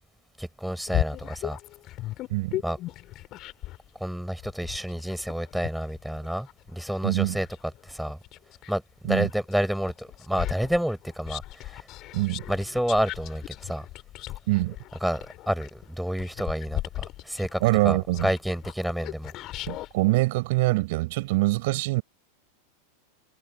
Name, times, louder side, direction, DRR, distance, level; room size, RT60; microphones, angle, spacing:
voice 1, 0.4-1.6 2.6-2.8 4.0-7.5 7.9-8.2 8.7-11.4 11.7-11.8 12.5-13.8 15.0-19.3, equal, ahead, 5.5 m, -29 dB
sound 1, 0.9-3.9 4.4-8.8 9.2-19.9, left 16 dB, 35° left, 6.1 m, -36 dB
voice 2, 2.3-2.6 7.0-7.4 9.0-9.3 12.1-12.4 14.5-14.8 17.6-18.3 19.7-22.0, right 22 dB, 50° right, 6.0 m, -24 dB
figure-of-eight pair, 90°, 0 cm